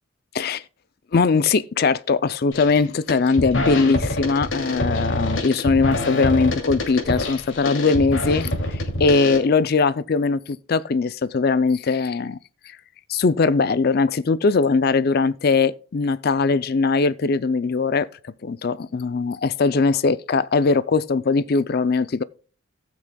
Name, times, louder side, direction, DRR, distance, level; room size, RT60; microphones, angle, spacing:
voice 1, 1.1-8.5 8.7-12.4 13.1-18.1 18.4-22.2, left 4 dB, 50° left, 0.4 m, -20 dB
sound 1, 2.5-2.8 3.1-9.4, left 1 dB, 70° left, 2.5 m, -26 dB
18.0 x 6.2 x 2.3 m
head